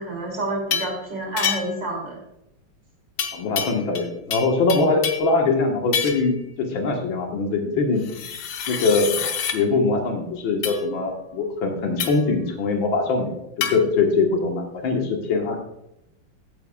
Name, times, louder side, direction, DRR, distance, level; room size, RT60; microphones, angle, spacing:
voice 1, 0.0-2.2, right 1 dB, 65° right, -2 dB, 3.5 m, -29 dB
sound 1, 0.7-1.0 1.4-1.9 3.2-4.1 4.3-5.3 5.9-6.3 8.0-9.6 10.6-10.8 12.0-12.3 13.6-13.8, left 7 dB, 65° left, 1.5 m, -27 dB
voice 2, 3.3-8.0 8.7-9.1 9.5-13.3 13.7-15.6, left 3 dB, 85° left, 1 dB, 2.2 m, -22 dB
14.5 x 9.1 x 2.4 m, 0.82 s
omnidirectional pair, 2.1 m